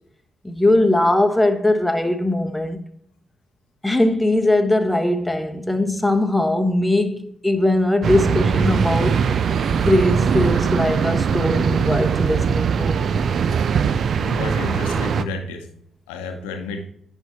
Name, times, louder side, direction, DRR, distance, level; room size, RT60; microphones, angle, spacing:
voice 1, 0.4-2.8 3.8-9.2 9.7-13.0, left 1 dB, 5° left, 1.1 m, -20 dB
sound 1, 8.0-15.2, right 6 dB, 60° right, 0.4 m, -21 dB
voice 2, 14.2-15.7 16.1-16.9, left 3 dB, 80° left, 0.9 m, -31 dB
10.0 x 3.6 x 4.0 m
hypercardioid pair, 40°, 0 cm